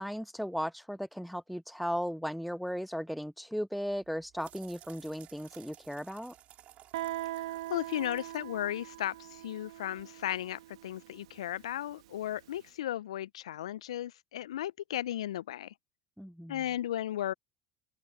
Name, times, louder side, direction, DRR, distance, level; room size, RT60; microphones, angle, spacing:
voice 1, 0.0-6.3 16.2-16.6, equal, ahead, 0.3 m, -36 dB
sound 1, 3.9-9.5, right 12 dB, 45° right, 4.1 m, -57 dB
Guitar, 6.9-12.4, right 15 dB, 75° right, 1.8 m, -42 dB
voice 2, 7.7-15.7 16.5-17.3, left 12 dB, 75° left, 0.5 m, -35 dB
open air
hypercardioid pair, 75°, 3 cm